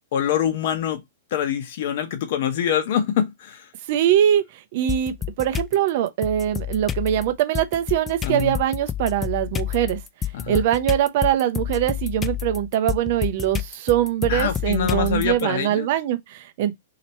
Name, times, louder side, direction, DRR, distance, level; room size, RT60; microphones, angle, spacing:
voice 1, 0.1-1.0 1.3-3.7 8.2-8.5 10.3-10.6 14.3-15.9, left 9 dB, 55° left, 0.9 m, -24 dB
voice 2, 3.9-4.4 4.7-10.0 10.5-16.7, right 11 dB, 50° right, 0.7 m, -22 dB
sound 1, 4.9-5.7 6.2-15.4, left 9 dB, 15° left, 0.3 m, -29 dB
2.9 x 2.9 x 4.3 m
hypercardioid pair, 140°, 0 cm